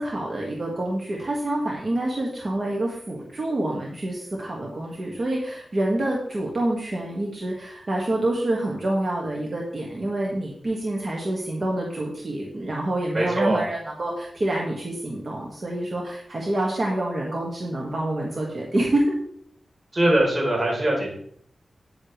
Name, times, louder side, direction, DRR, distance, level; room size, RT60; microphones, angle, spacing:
voice 1, 0.0-19.2, right 1 dB, 55° right, -2 dB, 1.9 m, -27 dB
voice 2, 13.1-13.6 19.9-21.1, right 1 dB, 35° right, -2 dB, 3.9 m, -22 dB
9.9 x 8.2 x 3.3 m, 0.65 s
cardioid pair, 60°, 0 cm